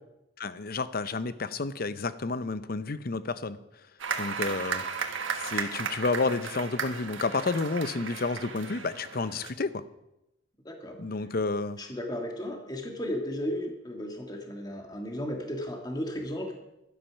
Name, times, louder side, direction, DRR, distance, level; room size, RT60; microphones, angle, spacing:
voice 1, 0.4-3.6 4.2-4.8 5.4-9.8 11.0-11.8, left 3 dB, 50° left, 14 dB, 0.7 m, -30 dB
sound 1, 4.0-9.5, right 5 dB, 90° right, 1.4 m, -35 dB
voice 2, 10.7-11.0 11.8-16.6, equal, 20° left, 2 dB, 1.7 m, -34 dB
12.5 x 12.0 x 5.8 m, 0.90 s
head